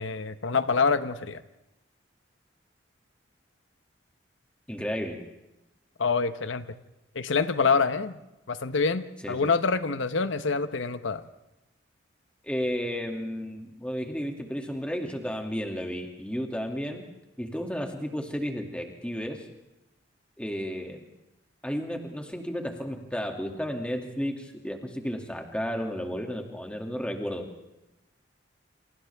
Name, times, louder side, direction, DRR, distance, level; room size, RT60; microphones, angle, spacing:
voice 1, 0.0-1.4 6.0-6.7 7.1-8.2 8.5-11.2, left 4 dB, 85° left, 11 dB, 0.9 m, -26 dB
voice 2, 4.7-5.2 9.2-9.5 12.4-17.1 17.4-19.4 20.4-21.1 21.6-27.5, equal, 5° left, 3 dB, 2.3 m, -33 dB
29.0 x 27.5 x 3.5 m, 0.94 s
head